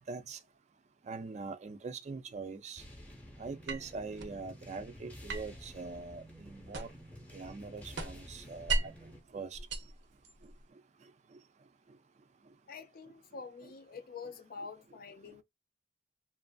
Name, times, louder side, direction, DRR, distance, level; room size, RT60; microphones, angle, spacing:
voice 1, 0.1-0.4 1.1-2.8 3.4-6.9 7.3-8.9 9.3-9.6, right 4 dB, 40° right, 0.4 m, -42 dB
sound 1, 2.8-9.2, equal, 10° left, 0.8 m, -51 dB
sound 2, 3.7-4.4 5.3-7.1 7.5-9.1 9.5-10.6, right 3 dB, 75° right, 0.7 m, -37 dB
voice 2, 12.7-15.4, left 5 dB, 55° left, 0.4 m, -46 dB
2.9 x 2.5 x 2.2 m
head